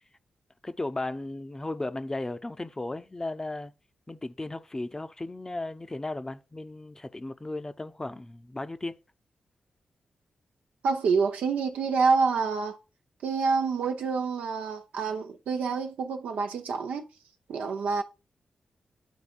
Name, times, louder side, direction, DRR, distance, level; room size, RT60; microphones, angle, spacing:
voice 1, 0.6-3.7 4.1-9.0, left 2 dB, 25° left, 0.5 m, -35 dB
voice 2, 10.8-12.8 13.2-17.0 17.5-18.0, right 5 dB, 85° right, 0.7 m, -27 dB
11.0 x 3.9 x 2.5 m
cardioid pair, 50°, 2 cm